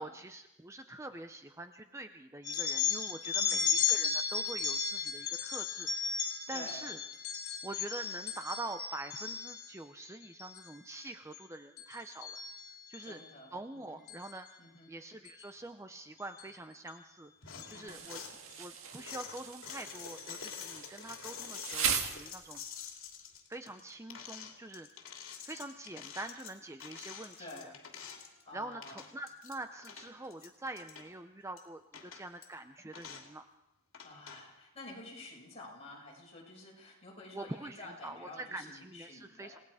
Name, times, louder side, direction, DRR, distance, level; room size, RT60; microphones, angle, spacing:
voice 1, 0.0-7.0 7.6-12.4 12.7-13.2 13.5-14.5 14.9-22.6 23.5-24.9 25.4-27.7 28.5-33.5 37.3-39.6, right 2 dB, 15° right, 8 dB, 0.6 m, -45 dB
sound 1, 2.4-9.7 10.2-10.6 10.9-11.4 11.8-13.1 14.1-14.3 15.3-15.4 16.4-16.5 16.9-17.0 17.5-17.8, left 7 dB, 50° left, 3.7 m, -35 dB
voice 2, 3.4-3.8 6.5-6.9 13.0-13.6 13.8-14.0 14.6-14.9 17.6-18.1 27.4-27.8 28.4-29.0 34.0-39.5, left 2 dB, 30° left, -3 dB, 6.3 m, -50 dB
sound 2, 17.4-18.4 18.9-28.4 28.7-29.6 29.8-31.1 31.6-31.7 31.9-32.5 32.9-33.3 33.9-34.4, left 7 dB, 70° left, 2.9 m, -47 dB
Insect, 17.9-22.8, right 7 dB, 75° right, 2.0 m, -39 dB
29.0 x 18.5 x 4.9 m, 0.92 s
head